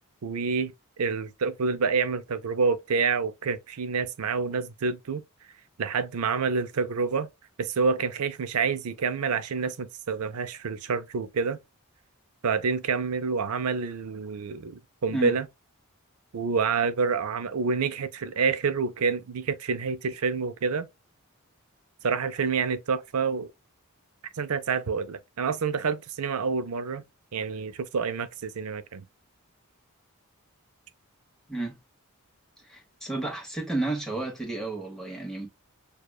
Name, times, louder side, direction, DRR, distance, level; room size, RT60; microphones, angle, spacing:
voice 1, 0.2-0.7 1.0-5.2 5.8-7.3 7.6-11.6 12.4-15.5 16.3-20.9 22.0-23.5 24.4-27.0 27.3-29.0, right 5 dB, 80° right, 0.5 m, -28 dB
voice 2, 32.7-35.5, right 2 dB, ahead, 1.1 m, -31 dB
6.5 x 2.3 x 2.3 m
head